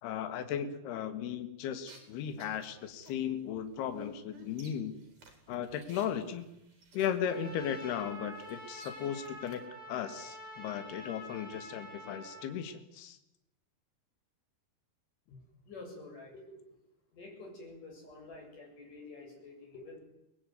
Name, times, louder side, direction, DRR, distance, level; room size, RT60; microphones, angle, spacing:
voice 1, 0.0-4.9 5.5-6.5 6.9-9.6 9.9-13.2, left 9 dB, 75° left, 8 dB, 3.6 m, -36 dB
sound 1, 1.9-9.6, right 2 dB, 50° right, 5.8 m, -56 dB
Trumpet, 7.2-12.5, equal, ahead, 6.7 m, -47 dB
voice 2, 15.7-16.6 17.1-20.0, left 2 dB, 50° left, 0 dB, 9.3 m, -49 dB
24.0 x 20.5 x 9.4 m, 0.88 s
omnidirectional pair, 4.8 m